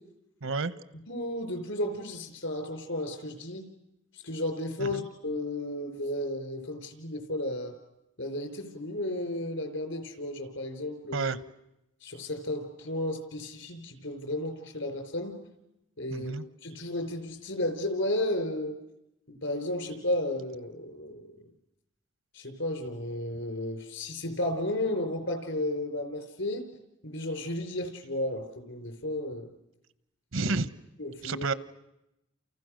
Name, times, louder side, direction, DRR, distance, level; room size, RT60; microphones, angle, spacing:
voice 1, 0.4-0.7 4.8-5.0 11.1-11.4 16.1-16.4 30.3-30.7 31.2-31.5, right 3 dB, 80° right, 15 dB, 1.0 m, -30 dB
voice 2, 1.1-3.7 4.1-7.7 8.2-11.3 12.0-15.4 16.0-16.3 16.6-18.8 19.3-21.4 22.3-26.6 27.0-29.5 31.0-31.5, left 1 dB, 70° left, 7 dB, 4.6 m, -33 dB
30.0 x 29.0 x 6.4 m, 0.88 s
head